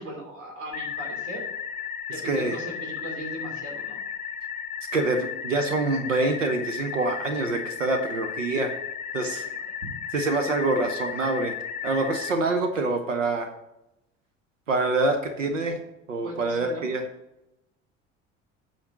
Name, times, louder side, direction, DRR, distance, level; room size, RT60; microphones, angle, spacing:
voice 1, 0.0-1.4 2.1-4.0 9.2-9.7 16.2-16.9, right 1 dB, 55° right, -1 dB, 2.9 m, -38 dB
sound 1, 0.7-12.3, left 7 dB, 25° left, 0.7 m, -35 dB
voice 2, 2.2-2.6 4.9-8.7 9.1-9.5 10.1-11.6 11.8-13.5 14.7-15.8 16.1-17.0, right 3 dB, 80° right, 6 dB, 0.9 m, -26 dB
8.8 x 4.4 x 6.3 m, 0.88 s
figure-of-eight pair, 60°, 37 cm